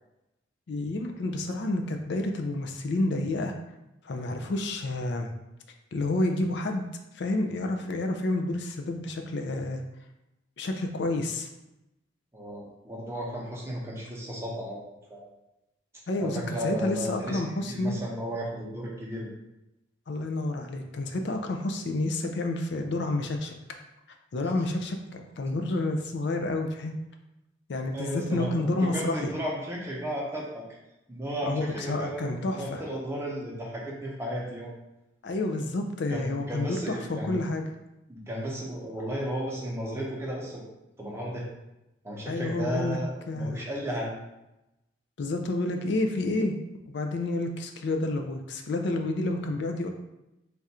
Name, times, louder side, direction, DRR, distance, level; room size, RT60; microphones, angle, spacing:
voice 1, 0.7-3.5 4.0-5.3 5.9-6.8 7.1-9.8 10.6-11.5 16.1-18.0 20.1-23.5 24.3-27.0 27.7-29.3 31.4-32.8 35.2-37.7 42.3-43.0 43.3-43.6 45.2-46.6 46.9-49.9, left 2 dB, 70° left, 4 dB, 0.4 m, -29 dB
voice 2, 12.3-15.3 16.2-17.4 17.7-19.3 27.9-30.6 31.1-34.7 36.1-37.4 38.1-40.6 41.0-41.5 42.0-44.1, equal, 15° right, -4 dB, 0.7 m, -34 dB
3.4 x 2.4 x 4.2 m, 0.92 s
head